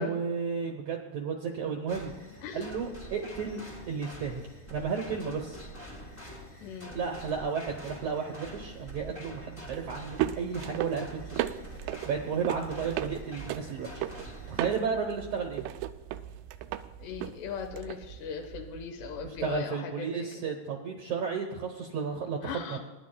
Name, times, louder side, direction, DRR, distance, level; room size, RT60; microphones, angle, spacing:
voice 1, 0.0-2.1 2.5-5.6 6.9-11.5 12.1-14.1 14.5-15.7 19.2-22.8, right 6 dB, 70° right, 2 dB, 1.8 m, -33 dB
sound 1, 1.9-14.8, equal, 15° left, 0.4 m, -46 dB
voice 2, 6.6-7.2 17.0-20.3 22.4-22.8, left 6 dB, 85° left, 3 dB, 3.3 m, -38 dB
sound 2, 8.7-19.6, right 13 dB, 90° right, 2.7 m, -37 dB
26.0 x 10.5 x 2.3 m, 1.2 s
omnidirectional pair, 4.8 m